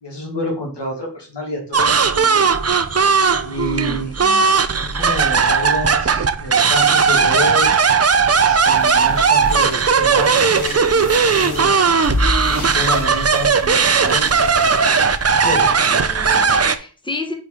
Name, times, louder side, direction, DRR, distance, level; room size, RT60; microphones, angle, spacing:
voice 1, 0.0-2.5 3.4-4.1 4.8-7.7 8.3-11.7 12.4-14.5 15.4-15.7, left 1 dB, 85° left, 1 dB, 2.1 m, -28 dB
sound 1, 1.7-16.7, right 5 dB, 40° right, 0.6 m, -16 dB
voice 2, 3.9-4.5 15.9-17.3, left 2 dB, 10° left, 4 dB, 1.2 m, -31 dB
sound 2, 8.3-16.4, left 2 dB, 50° left, 3.2 m, -30 dB
5.0 x 4.6 x 4.8 m, 0.39 s
wide cardioid pair, 60°, 41 cm